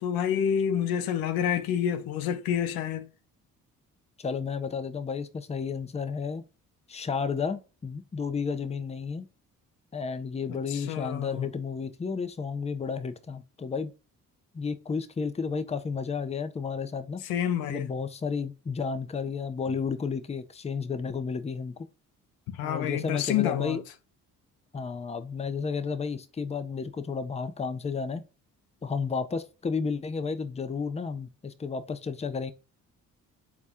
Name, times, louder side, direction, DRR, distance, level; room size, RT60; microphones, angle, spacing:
voice 1, 0.0-3.1 10.7-11.5 17.2-17.9 22.5-23.8, left 9 dB, 80° left, 0.6 m, -28 dB
voice 2, 4.2-6.4 6.9-9.3 9.9-13.9 14.5-17.2 17.7-21.8 22.6-23.8 24.7-28.2 28.8-32.5, left 5 dB, 20° left, 0.6 m, -32 dB
4.1 x 2.4 x 3.4 m
supercardioid pair, 60°, 35 cm